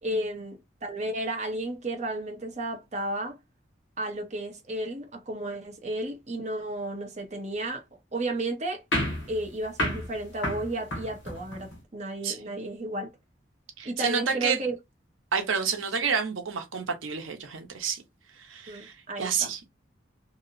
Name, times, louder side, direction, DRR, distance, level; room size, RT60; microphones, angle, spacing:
voice 1, 0.0-3.4 4.0-7.8 8.1-8.8 9.3-13.1 13.8-14.7 18.7-19.5, right 1 dB, 35° right, 0.7 m, -33 dB
sound 1, 8.9-11.8, left 1 dB, 65° left, 0.8 m, -31 dB
voice 2, 12.2-12.6 13.8-14.6 15.3-18.0 18.4-19.7, right 6 dB, 90° right, 0.7 m, -29 dB
2.7 x 2.0 x 2.5 m
head